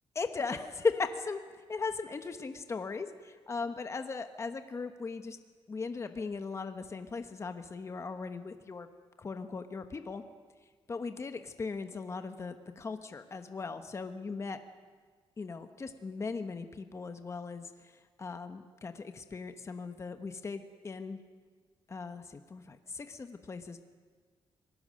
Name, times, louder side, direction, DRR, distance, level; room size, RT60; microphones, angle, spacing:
voice 1, 0.1-5.4 5.7-8.9 9.2-10.2 10.6-14.6 15.4-21.2 21.9-23.8, left 4 dB, 30° left, 8 dB, 1.2 m, -38 dB
24.0 x 19.0 x 6.5 m, 1.5 s
cardioid pair, 140°, 10 cm